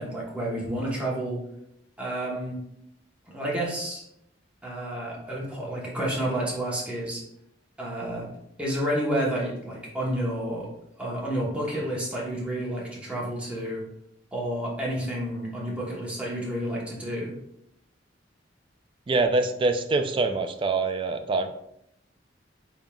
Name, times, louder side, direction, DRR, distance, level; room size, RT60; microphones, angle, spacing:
voice 1, 0.0-1.4 2.0-2.6 3.3-4.0 4.6-7.2 7.8-8.3 8.6-10.7 11.0-13.8 14.3-17.4, right 1 dB, 5° right, -5 dB, 1.0 m, -30 dB
voice 2, 19.1-21.7, right 3 dB, 30° right, 7 dB, 0.3 m, -25 dB
3.9 x 3.8 x 2.3 m, 0.77 s
head